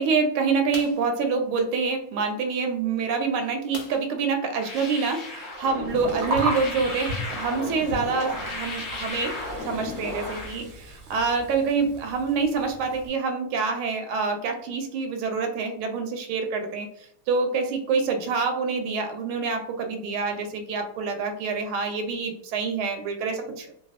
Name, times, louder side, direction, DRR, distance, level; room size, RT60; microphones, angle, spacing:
voice 1, 0.0-9.4 9.7-16.9 17.3-23.7, right 4 dB, 85° right, 5 dB, 1.4 m, -26 dB
sound 1, 0.7-1.1 3.7-4.3 4.7-4.8 5.2-5.3, left 6 dB, 75° left, 1.3 m, -41 dB
sound 2, 4.5-10.6, left 2 dB, 45° left, 0.6 m, -34 dB
Gurgling, 5.9-13.1, right 1 dB, 65° right, 0.8 m, -35 dB
3.3 x 2.2 x 2.4 m, 0.68 s
omnidirectional pair, 2.2 m